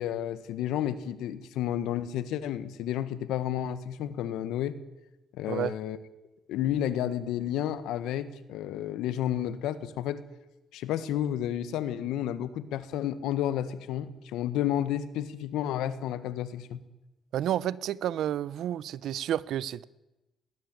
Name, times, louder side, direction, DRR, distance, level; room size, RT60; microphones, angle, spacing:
voice 1, 0.0-4.7 5.4-6.0 6.5-10.2 10.7-16.8, left 11 dB, 90° left, 1.6 m, -31 dB
voice 2, 17.3-19.8, right 11 dB, 80° right, 0.8 m, -30 dB
20.0 x 19.5 x 9.2 m
cardioid pair, 90°, 0 cm